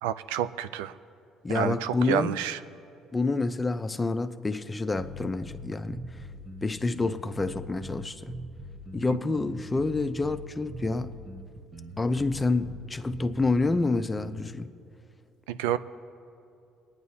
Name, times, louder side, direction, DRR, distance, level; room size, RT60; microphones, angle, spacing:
voice 1, 0.0-0.9 1.5-2.6 9.1-9.3 15.5-15.8, right 11 dB, 90° right, 0.3 m, -29 dB
voice 2, 1.4-2.4 3.1-6.2 6.6-8.3 8.9-11.1 12.0-14.7, left 3 dB, 20° left, 0.6 m, -28 dB
sound 1, 5.0-14.5, equal, 35° right, 1.1 m, -42 dB
24.5 x 9.6 x 2.8 m
supercardioid pair, 70°, 0 cm